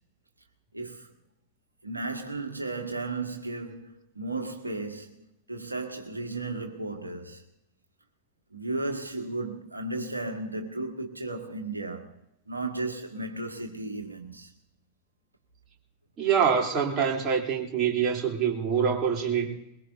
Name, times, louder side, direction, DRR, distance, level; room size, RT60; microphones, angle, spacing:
voice 1, 0.7-1.1 1.8-7.4 8.5-12.2 12.5-14.5, right 2 dB, 80° right, 1.7 m, -34 dB
voice 2, 16.2-19.5, right 7 dB, 30° right, 3.3 m, -25 dB
22.0 x 21.5 x 2.7 m
figure-of-eight pair, 90°, 0 cm